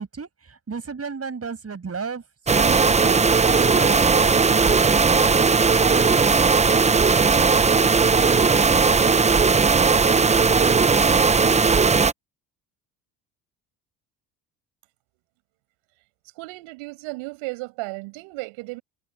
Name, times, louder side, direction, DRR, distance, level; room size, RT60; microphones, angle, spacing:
voice 1, 0.0-2.2 2.5-5.5, right 5 dB, 30° right, 6.8 m, -33 dB
sound 1, 2.5-12.1, right 4 dB, 15° right, 0.6 m, -17 dB
voice 2, 16.4-18.8, right 26 dB, 85° right, 7.3 m, -34 dB
supercardioid pair, 80°, 47 cm